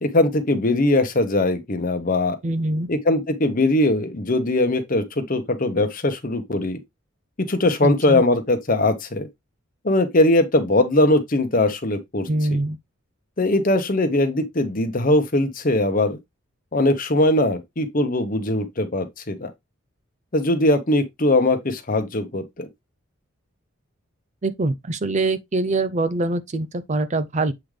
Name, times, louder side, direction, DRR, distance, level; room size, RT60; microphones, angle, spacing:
voice 1, 0.0-2.4 2.9-6.8 7.4-9.3 9.8-12.6 13.4-16.2 16.7-19.5 20.3-22.7, left 2 dB, 40° left, 1.0 m, -20 dB
voice 2, 2.4-2.9 7.8-8.2 12.3-12.8 24.4-27.5, right 2 dB, 35° right, 0.5 m, -24 dB
7.7 x 3.7 x 3.3 m
head